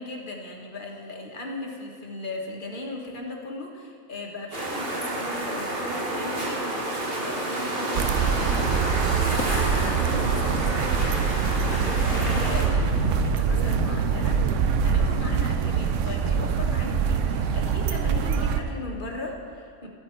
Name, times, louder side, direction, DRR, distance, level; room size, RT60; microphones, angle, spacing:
voice 1, 0.0-19.9, left 2 dB, 40° left, 0 dB, 1.4 m, -37 dB
sound 1, 4.5-12.7, right 1 dB, 45° right, 1.6 m, -29 dB
sound 2, 7.9-18.6, right 7 dB, 70° right, 0.9 m, -24 dB
sound 3, 9.4-18.7, left 4 dB, 90° left, 1.4 m, -38 dB
13.5 x 8.6 x 4.4 m, 2.2 s
omnidirectional pair, 1.4 m